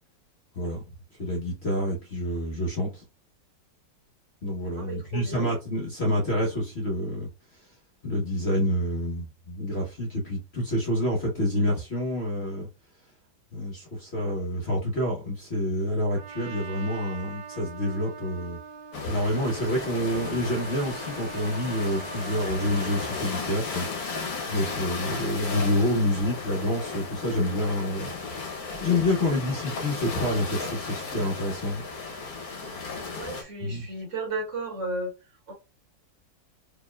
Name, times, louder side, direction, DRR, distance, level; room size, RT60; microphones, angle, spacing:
voice 1, 1.2-3.0 4.4-7.3 8.0-12.7 13.5-18.6 19.0-24.2 24.5-28.4 28.7-31.8 33.6-33.9, left 1 dB, 40° left, 1.2 m, -28 dB
voice 2, 4.7-5.5 33.1-35.1 35.5-35.6, right 2 dB, 45° right, 1.8 m, -34 dB
Trumpet, 16.1-23.3, right 6 dB, 85° right, 1.3 m, -42 dB
sound 1, 18.9-33.4, left 4 dB, 60° left, 1.4 m, -35 dB
4.6 x 3.0 x 2.2 m
omnidirectional pair, 1.9 m